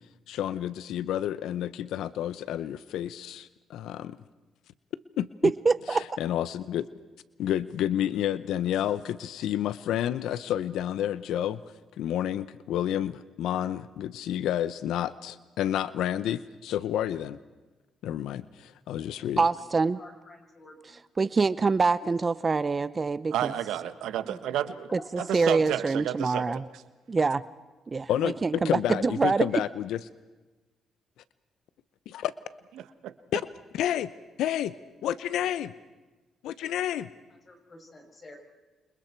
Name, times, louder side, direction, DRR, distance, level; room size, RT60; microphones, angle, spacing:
voice 1, 0.3-4.2 5.2-5.5 5.9-6.9 7.4-11.6 12.0-17.4 18.0-19.4 28.1-30.0 32.1-32.3 33.3-33.4 33.7-34.1 34.4-34.7 35.0-35.7 36.4-37.1, left 11 dB, 85° left, 15 dB, 0.7 m, -30 dB
voice 2, 5.4-6.1 19.4-20.0 21.2-23.5 24.3-24.4 24.9-26.6 27.1-27.4 27.9-29.5, right 4 dB, 30° right, 16 dB, 0.6 m, -25 dB
voice 3, 19.2-19.6 20.0-21.0 22.0-22.1 24.5-24.6 25.2-25.5 37.5-38.4, left 2 dB, 35° left, 2 dB, 7.1 m, -48 dB
voice 4, 23.3-24.9 25.2-26.4 33.0-33.1, right 11 dB, 85° right, 11 dB, 1.4 m, -30 dB
29.0 x 26.5 x 4.6 m, 1.2 s
cardioid pair, 90°, 0 cm